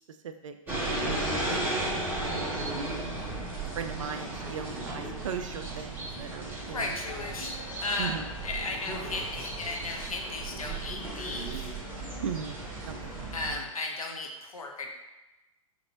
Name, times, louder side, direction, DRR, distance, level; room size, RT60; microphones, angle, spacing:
voice 1, 0.1-3.0 3.7-6.9 8.0-8.3 12.2-13.2 13.5-13.7, right 7 dB, 60° right, 9 dB, 0.4 m, -39 dB
sound 1, 0.7-13.6, right 2 dB, 10° right, 1.3 m, -35 dB
voice 2, 6.6-7.6 7.8-11.7 13.3-14.9, left 3 dB, 75° left, 2 dB, 0.7 m, -35 dB
4.9 x 2.9 x 2.9 m, 1.0 s
figure-of-eight pair, 105°, 18 cm